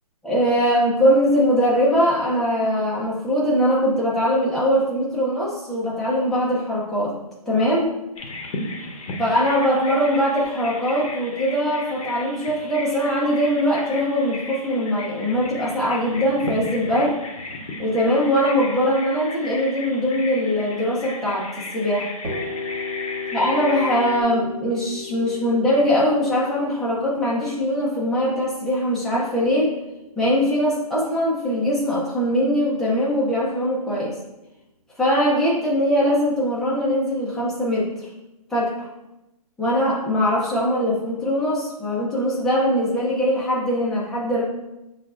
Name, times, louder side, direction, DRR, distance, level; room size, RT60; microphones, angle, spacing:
voice 1, 0.2-7.1 7.5-7.9 9.2-17.2 17.8-22.1 23.3-29.7 30.2-34.2 35.0-38.1 38.5-38.7 39.6-44.4, equal, ahead, -7 dB, 0.6 m, -21 dB
Bird vocalization bird call bird song, 8.2-24.2, left 2 dB, 65° left, 0.7 m, -35 dB
sound 1, 22.2-30.0, left 5 dB, 45° right, 1.4 m, -35 dB
6.0 x 2.4 x 2.4 m, 0.95 s
hypercardioid pair, 150°, 19 cm